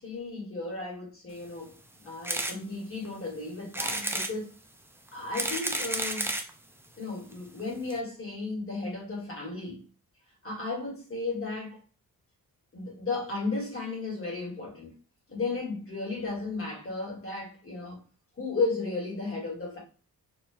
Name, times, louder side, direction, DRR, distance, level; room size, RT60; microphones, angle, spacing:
voice 1, 0.0-4.5 5.1-6.3 7.0-9.8 10.4-11.8 12.7-14.9 15.3-18.0 18.4-19.8, left 3 dB, 35° left, 1.9 m, -34 dB
sound 1, 2.2-2.6 3.0-3.1 3.7-4.3 5.1-6.5 7.3-7.4 7.6-7.7 7.9-8.0, right 1 dB, 5° right, 0.4 m, -31 dB
4.4 x 2.8 x 2.7 m
wide cardioid pair, 155°, 37 cm